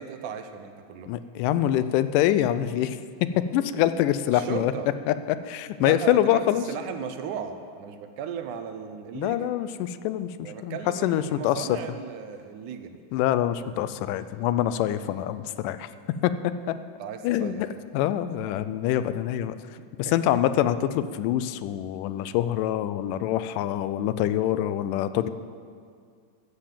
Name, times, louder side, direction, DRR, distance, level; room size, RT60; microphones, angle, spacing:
voice 1, 0.0-1.1 4.3-4.9 5.8-9.5 10.4-13.0 17.0-17.6 20.0-20.4, right 7 dB, 80° right, 8 dB, 2.1 m, -36 dB
voice 2, 1.1-4.7 5.1-6.6 9.2-11.8 13.1-15.9 16.2-16.7 17.2-17.7 17.9-19.6 20.0-25.3, left 12 dB, 90° left, 12 dB, 2.2 m, -25 dB
15.0 x 6.7 x 7.4 m, 2.2 s
omnidirectional pair, 3.7 m